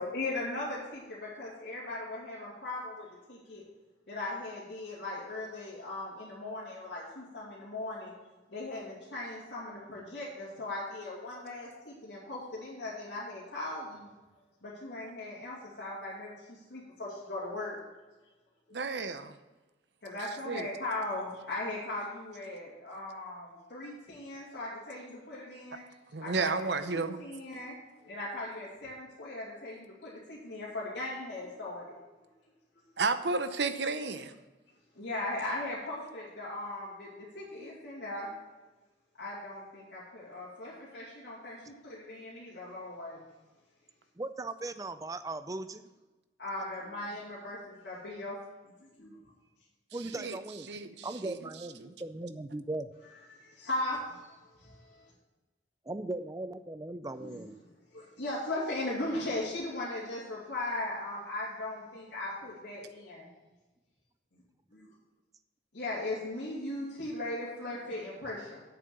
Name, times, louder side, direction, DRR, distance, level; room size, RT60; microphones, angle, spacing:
voice 1, 0.0-3.6 4.1-8.1 8.5-14.1 14.6-17.8 20.0-25.8 26.2-27.7 28.0-32.0 32.7-32.9 34.9-38.3 39.2-43.2 46.4-48.4 48.8-49.2 53.6-54.2 54.6-55.1 57.2-57.4 57.9-63.3 64.7-64.9 65.7-68.6, left 2 dB, 70° left, -8 dB, 2.7 m, -38 dB
voice 2, 18.7-19.3 20.4-20.7 26.1-27.2 33.0-34.3 50.2-50.4 50.7-51.4 51.8-51.9, right 4 dB, 65° right, 10 dB, 0.7 m, -32 dB
voice 3, 44.2-45.8 49.9-50.8 51.0-52.9 55.9-57.5, right 2 dB, 20° right, 12 dB, 0.4 m, -38 dB
8.5 x 7.0 x 6.9 m, 1.2 s
head